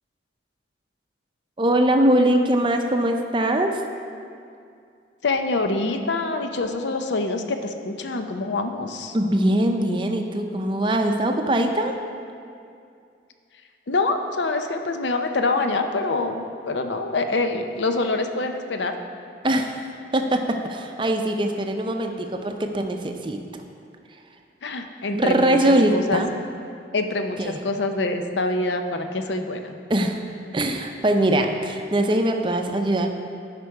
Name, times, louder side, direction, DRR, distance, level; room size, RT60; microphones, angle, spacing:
voice 1, 1.6-3.8 9.1-11.9 19.4-19.8 20.1-23.4 25.1-26.3 27.4-27.6 29.9-30.2 30.5-33.1, right 1 dB, 25° right, 5 dB, 0.5 m, -22 dB
voice 2, 5.2-9.2 13.9-19.0 24.6-26.2 26.9-29.8, left 3 dB, 80° left, 6 dB, 0.7 m, -25 dB
12.0 x 5.2 x 4.7 m, 2.4 s
head